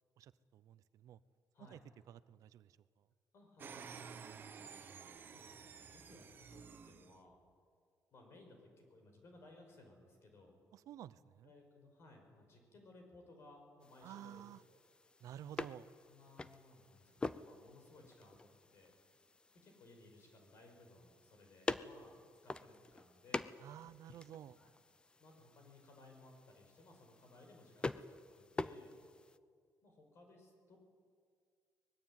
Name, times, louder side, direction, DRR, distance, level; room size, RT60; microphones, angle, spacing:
voice 1, 0.2-1.2 1.7-1.8 2.1-3.1 10.7-11.5 14.0-14.6 15.2-15.9 23.6-24.6, right 11 dB, 65° right, 16 dB, 0.7 m, -52 dB
voice 2, 3.3-3.9 5.2-7.4 8.1-10.5 11.4-14.4 14.7-14.8 16.1-18.9 19.5-23.5 24.6-24.7 25.2-28.9 29.8-30.8, left 2 dB, 45° left, 3 dB, 5.9 m, -61 dB
sound 1, 3.6-7.2, right 6 dB, 35° right, 1.1 m, -52 dB
sound 2, 13.8-29.4, left 3 dB, 15° left, 0.6 m, -47 dB
24.5 x 20.0 x 9.1 m, 2.1 s
cardioid pair, 175°, 6 cm